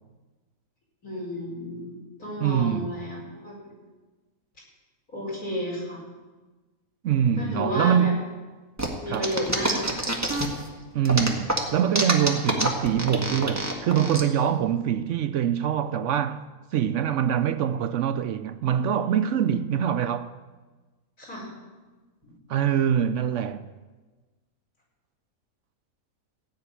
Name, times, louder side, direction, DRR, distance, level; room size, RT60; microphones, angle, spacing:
voice 1, 1.0-1.9 2.2-3.5 5.1-6.0 7.4-8.1 9.0-9.8 21.2-21.5, equal, 90° left, 5.1 m, -31 dB
voice 2, 2.4-3.0 7.0-8.3 9.1-9.3 10.9-16.5 16.7-20.3 22.5-23.7, right 9 dB, 65° right, 0.8 m, -24 dB
sound 1, 8.8-10.7 11.0-14.2, right 1 dB, 10° right, 1.6 m, -26 dB
15.5 x 6.1 x 9.6 m
omnidirectional pair, 1.5 m